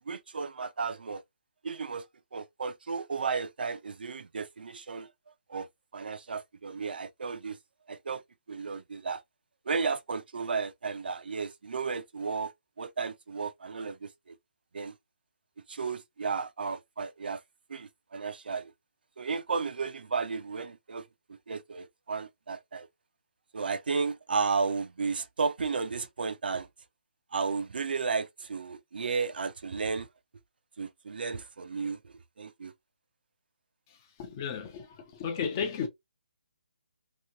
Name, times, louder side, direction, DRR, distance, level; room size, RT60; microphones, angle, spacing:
voice 1, 0.1-1.2 1.6-2.1 2.3-5.7 5.9-7.6 7.9-8.2 8.5-9.2 9.7-12.5 12.8-14.4 14.7-15.0 15.7-17.4 17.7-18.7 19.2-21.1 21.5-22.9 23.5-26.7 27.3-30.1 30.8-32.7, right 5 dB, 70° right, 0.5 m, -33 dB
voice 2, 34.2-34.9 35.2-35.9, left 6 dB, 20° left, 0.5 m, -32 dB
3.0 x 2.7 x 2.6 m
hypercardioid pair, 170°, 5 cm